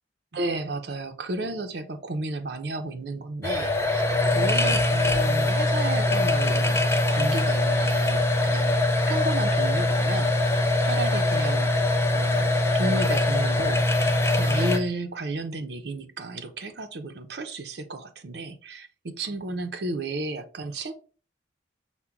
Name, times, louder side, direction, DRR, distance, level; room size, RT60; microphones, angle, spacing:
voice 1, 0.3-6.8 7.1-8.8 9.1-11.7 12.1-20.9, right 2 dB, 65° right, 0.6 m, -33 dB
sound 1, 3.4-14.8, left 2 dB, 15° left, 0.5 m, -23 dB
5.7 x 2.1 x 3.6 m
head